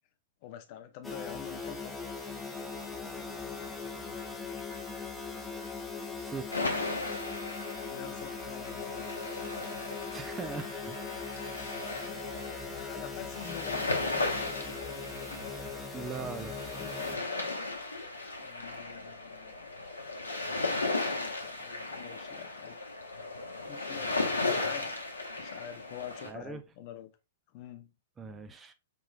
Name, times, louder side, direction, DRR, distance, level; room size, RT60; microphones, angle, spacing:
voice 1, 0.4-2.0 7.9-9.2 12.7-15.1 16.2-16.3 16.8-16.9 18.4-19.7 20.9-22.8 23.7-25.0 25.4-27.1 27.5-27.9, left 10 dB, 40° left, 0.6 m, -46 dB
sound 1, 1.0-17.2, left 4 dB, 5° left, 0.8 m, -40 dB
sound 2, 3.2-11.1, right 2 dB, 85° right, 1.5 m, -57 dB
voice 2, 6.2-6.8 10.1-11.0 15.9-16.6 26.2-26.6 28.2-28.7, right 5 dB, 15° right, 0.4 m, -40 dB
sound 3, 6.5-26.3, left 3 dB, 75° left, 0.8 m, -36 dB
5.2 x 3.0 x 2.2 m
figure-of-eight pair, 110°, 0 cm